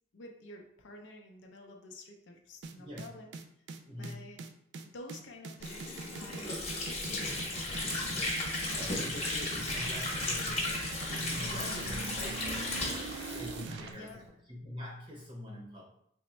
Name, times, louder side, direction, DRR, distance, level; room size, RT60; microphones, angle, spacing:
voice 1, 0.1-3.3 4.0-4.4 4.8-8.4 11.5-11.9 13.8-14.2, left 2 dB, 80° left, 2 dB, 0.5 m, -50 dB
sound 1, 2.6-13.9, right 4 dB, 65° right, 0.3 m, -42 dB
voice 2, 2.8-3.1 3.9-4.2 8.5-12.9 13.3-15.8, left 1 dB, 25° right, -4 dB, 0.7 m, -44 dB
Water / Sink (filling or washing), 5.6-14.2, left 2 dB, 35° left, 0.9 m, -35 dB
3.4 x 2.1 x 4.1 m, 0.71 s
head